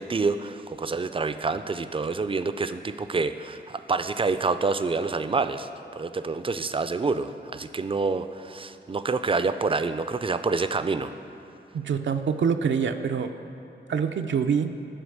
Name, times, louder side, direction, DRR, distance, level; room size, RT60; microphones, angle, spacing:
voice 1, 0.0-11.1, right 4 dB, 30° right, 11 dB, 0.3 m, -27 dB
voice 2, 11.7-13.3 13.9-14.7, right 6 dB, 90° right, 6 dB, 0.4 m, -25 dB
11.5 x 4.8 x 6.4 m, 2.7 s
wide cardioid pair, 105°, 19 cm